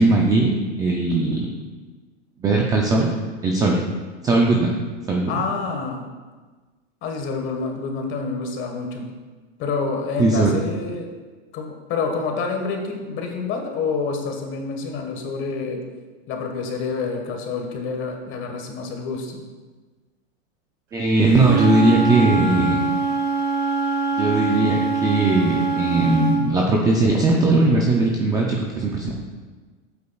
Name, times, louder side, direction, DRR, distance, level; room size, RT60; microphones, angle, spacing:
voice 1, 0.0-1.5 2.4-3.1 3.4-3.8 4.2-4.7 5.1-5.3 10.2-10.5 20.9-22.8 24.2-29.1, right 2 dB, 10° right, -1 dB, 0.4 m, -19 dB
voice 2, 5.3-6.1 7.0-9.1 9.6-11.1 11.5-15.8 16.3-19.5, left 4 dB, 30° left, 3 dB, 1.4 m, -28 dB
Wind instrument woodwind instrument, 21.3-26.4, right 4 dB, 85° right, 2.5 m, -23 dB
12.0 x 8.5 x 2.3 m, 1.3 s
supercardioid pair, 150°, 37 cm